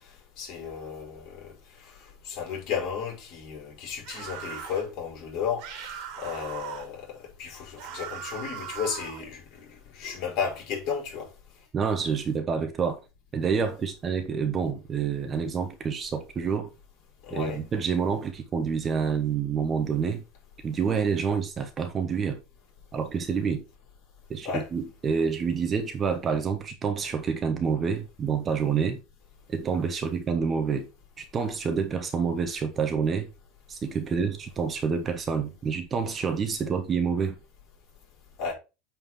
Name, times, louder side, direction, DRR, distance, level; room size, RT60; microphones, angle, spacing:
voice 1, 0.4-1.5 1.8-1.9 2.2-9.7 9.9-11.3 17.3-17.6 24.4-24.7 38.4-38.5, left 6 dB, 50° left, 4.7 m, -33 dB
sound 1, 4.0-4.9 5.6-6.9 7.8-9.3, right 9 dB, 60° right, 1.9 m, -39 dB
voice 2, 11.7-13.0 13.3-16.7 17.3-20.2 20.6-22.4 22.9-23.6 24.3-29.0 29.5-30.9 31.2-33.3 33.7-37.4, right 6 dB, 25° right, 1.0 m, -28 dB
8.9 x 4.5 x 3.7 m
supercardioid pair, 145°, 0 cm